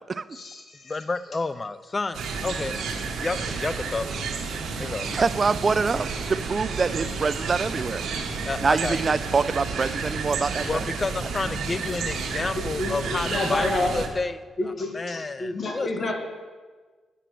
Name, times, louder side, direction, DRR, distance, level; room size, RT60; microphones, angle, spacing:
voice 1, 0.3-1.0 12.5-13.9 14.6-16.1, left 2 dB, 50° left, 2 dB, 1.5 m, -29 dB
voice 2, 0.9-2.8 3.2-4.1 4.8-5.2 8.4-9.0 10.7-16.1, left 3 dB, 30° left, 14 dB, 0.4 m, -30 dB
sound 1, 2.1-14.1, right 4 dB, 80° right, 1.1 m, -31 dB
voice 3, 5.1-8.0 8.6-10.9, right 4 dB, 40° right, 15 dB, 0.3 m, -25 dB
8.0 x 6.0 x 6.1 m, 1.4 s
cardioid pair, 85°, 0 cm